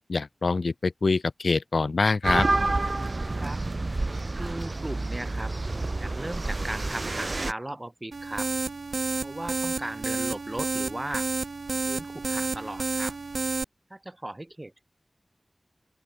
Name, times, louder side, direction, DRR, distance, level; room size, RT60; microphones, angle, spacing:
voice 1, 0.1-2.5, left 3 dB, 80° left, 0.5 m, -25 dB
sound 1, 2.2-7.5, right 2 dB, 50° right, 3.2 m, -28 dB
voice 2, 4.3-5.5 6.0-8.5 9.2-11.3 11.9-13.2 13.9-14.8, right 1 dB, 25° right, 5.0 m, -37 dB
sound 2, 8.1-13.6, right 3 dB, 85° right, 0.4 m, -30 dB
open air
wide cardioid pair, 60°, 0 cm